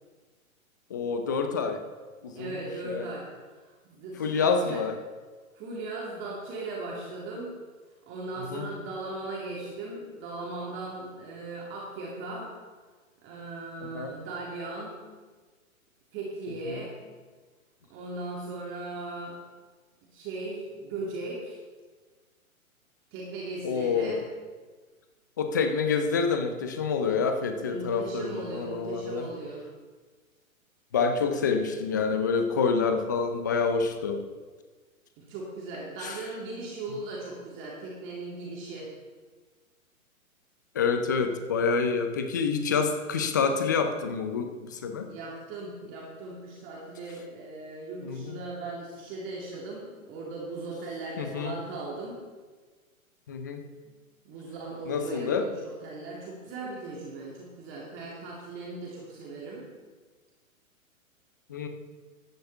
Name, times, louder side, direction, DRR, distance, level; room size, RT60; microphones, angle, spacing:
voice 1, 0.9-1.8 2.2-3.1 4.2-5.0 8.4-8.7 13.9-14.1 16.7-16.8 23.6-24.2 25.4-29.3 30.9-34.2 36.0-36.2 40.7-45.1 48.0-48.4 51.2-51.6 53.3-53.6 54.9-55.4 61.5-61.7, left 5 dB, 15° left, 7 dB, 0.4 m, -27 dB
voice 2, 2.3-4.8 5.5-7.5 8.1-12.5 13.2-15.0 16.1-17.0 17.9-19.4 20.1-21.6 23.1-24.2 27.6-29.6 35.2-38.9 45.1-52.2 53.8-54.0 54.2-59.6, right 2 dB, 25° right, -4 dB, 2.5 m, -38 dB
14.0 x 10.5 x 3.4 m, 1.4 s
figure-of-eight pair, 120°, 43 cm